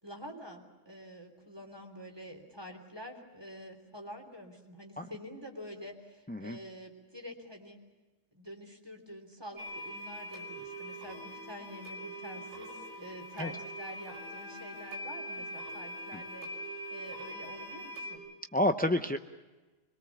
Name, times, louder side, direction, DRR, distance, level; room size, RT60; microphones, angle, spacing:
voice 1, 0.0-7.8 8.3-18.2, equal, 20° right, 3 dB, 3.3 m, -47 dB
sound 1, 9.6-18.2, equal, 85° right, 5.6 m, -42 dB
voice 2, 18.5-19.2, left 1 dB, 15° left, 7 dB, 0.4 m, -29 dB
25.0 x 22.0 x 7.2 m, 1.2 s
omnidirectional pair, 1.3 m